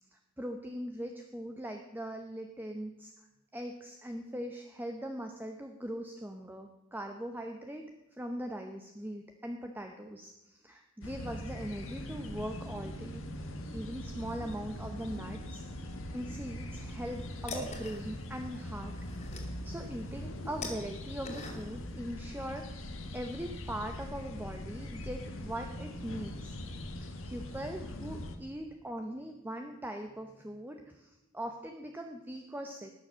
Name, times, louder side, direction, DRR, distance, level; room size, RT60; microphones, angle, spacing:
voice 1, 0.1-3.3 3.5-7.8 8.1-19.0 19.3-26.5 27.0-32.9, right 1 dB, 10° right, 4 dB, 0.8 m, -41 dB
sound 1, 11.0-28.4, left 1 dB, 70° left, 1.4 m, -42 dB
sound 2, 16.9-22.0, left 2 dB, 35° left, 2.5 m, -45 dB
19.0 x 7.0 x 6.3 m, 1.0 s
head